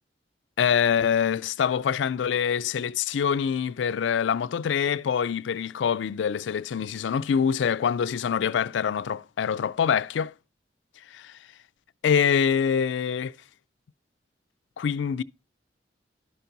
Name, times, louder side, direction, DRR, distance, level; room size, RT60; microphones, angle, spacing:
voice 1, 0.6-10.3 11.1-11.3 12.0-13.3 14.8-15.2, left 7 dB, 80° left, 0.4 m, -25 dB
11.5 x 5.8 x 3.9 m
head